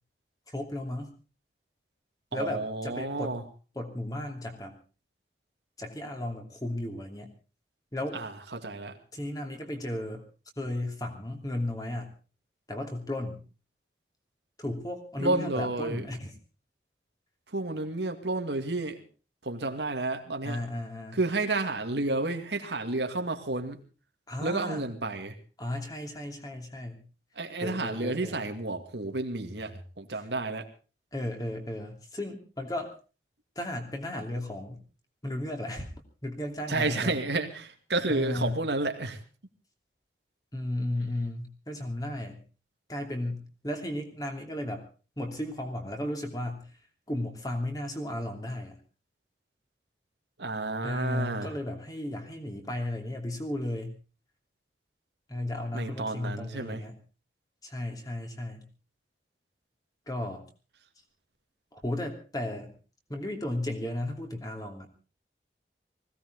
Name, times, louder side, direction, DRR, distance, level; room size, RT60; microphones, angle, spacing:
voice 1, 0.5-1.1 2.3-3.4 3.7-4.7 5.8-7.3 7.9-8.2 9.1-10.2 10.6-12.1 12.7-13.4 14.6-16.3 20.4-21.2 24.3-24.8 25.6-27.1 27.6-28.4 31.1-32.9 33.5-34.8 35.2-35.9 36.2-37.2 38.1-38.6 40.5-42.4 42.9-44.8 45.2-46.7 47.1-48.8 50.8-54.0 55.3-57.0 57.6-58.7 60.1-60.4 61.7-62.7 63.1-64.9, left 1 dB, 20° left, 4 dB, 2.9 m, -34 dB
voice 2, 2.3-3.4 8.1-9.0 15.2-16.0 17.5-19.0 19.4-20.6 21.1-23.8 24.4-25.4 27.4-30.7 36.7-39.2 50.4-51.5 55.7-56.8, right 2 dB, 85° right, 6 dB, 2.2 m, -31 dB
20.5 x 16.5 x 4.0 m, 0.34 s
head